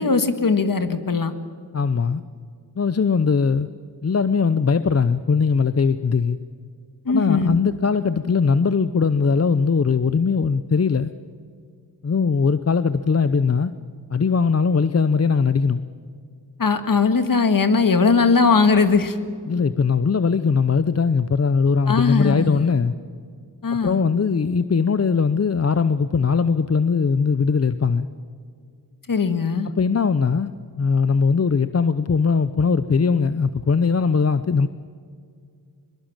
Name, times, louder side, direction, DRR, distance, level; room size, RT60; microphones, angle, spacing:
voice 1, 0.0-1.3 7.1-7.6 16.6-19.2 21.9-22.7 23.6-24.0 29.1-29.7, left 4 dB, 55° left, 9 dB, 1.9 m, -19 dB
voice 2, 1.7-2.2 2.8-3.7 4.0-6.4 7.1-11.1 12.0-13.7 14.1-15.8 19.5-22.9 23.7-28.1 29.8-30.5 30.8-34.7, left 5 dB, 40° left, 12 dB, 0.7 m, -20 dB
22.5 x 22.5 x 7.4 m, 2.2 s
wide cardioid pair, 65°, 41 cm